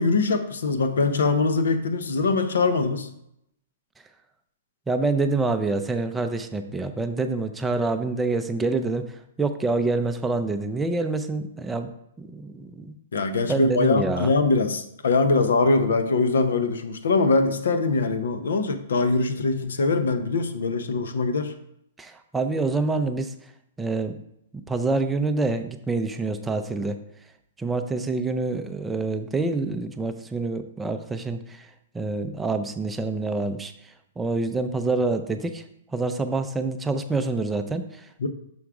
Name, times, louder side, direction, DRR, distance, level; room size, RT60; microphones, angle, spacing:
voice 1, 0.0-3.1 13.1-21.5 38.2-38.3, left 3 dB, 85° left, 9 dB, 0.7 m, -22 dB
voice 2, 4.9-11.9 12.2-13.0 13.5-14.3 22.0-23.3 23.8-24.2 24.5-27.0 27.6-31.7 31.9-35.6 35.9-38.1, right 3 dB, 10° right, 6 dB, 0.4 m, -27 dB
6.1 x 3.6 x 4.7 m, 0.77 s
hypercardioid pair, 155°, 0 cm